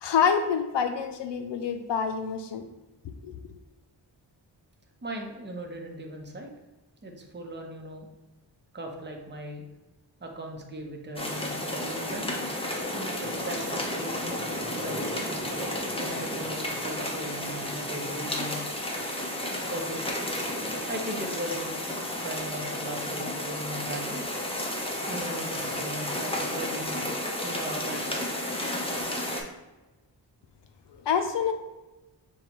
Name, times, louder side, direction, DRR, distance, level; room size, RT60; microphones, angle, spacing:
voice 1, 0.0-2.6 3.2-3.4 31.1-31.5, left 6 dB, 75° left, 7 dB, 0.5 m, -26 dB
voice 2, 5.0-6.5 7.0-8.1 8.7-9.7 10.2-12.4 13.2-14.3 14.6-15.0 15.8-18.6 19.7-20.5 20.9-21.9 22.2-24.3 25.1-27.1 27.4-28.3 28.9-29.1, right 1 dB, 25° right, 2 dB, 0.8 m, -38 dB
sound 1, 11.2-29.4, left 1 dB, 15° left, 0.7 m, -32 dB
6.7 x 2.3 x 2.9 m, 1.1 s
wide cardioid pair, 85°, 43 cm